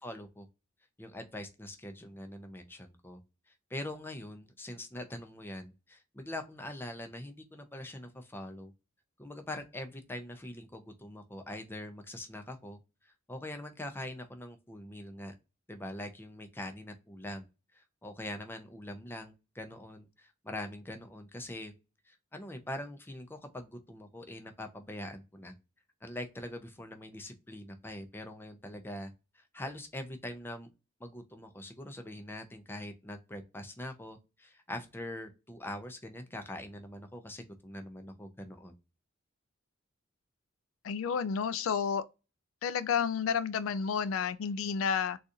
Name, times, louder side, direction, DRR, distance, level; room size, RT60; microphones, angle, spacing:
voice 1, 0.0-0.5 1.0-3.2 3.7-8.7 9.2-12.8 13.0-15.3 15.7-17.5 17.7-21.7 22.1-25.5 26.0-30.7 31.0-38.8, left 1 dB, 10° left, 0.5 m, -43 dB
voice 2, 40.8-42.0 42.6-45.2, left 6 dB, 75° left, 0.3 m, -31 dB
3.8 x 2.4 x 2.7 m
head